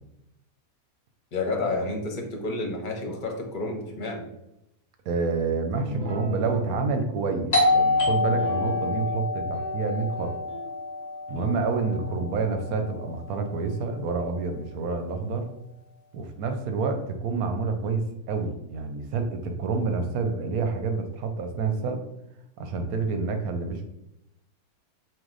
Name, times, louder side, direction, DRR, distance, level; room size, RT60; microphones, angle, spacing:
voice 1, 1.3-4.3, left 2 dB, 45° left, 1 dB, 0.7 m, -30 dB
voice 2, 5.1-10.3 11.3-15.5 16.1-22.0 22.6-23.9, right 4 dB, 85° right, 6 dB, 1.1 m, -28 dB
Guitar, 5.8-7.0 8.3-9.2 9.5-10.7 11.3-14.8, left 2 dB, 65° right, 1.2 m, -38 dB
Doorbell, 7.5-12.9, left 2 dB, 85° left, 0.3 m, -27 dB
4.7 x 2.1 x 3.8 m, 0.83 s
omnidirectional pair, 1.5 m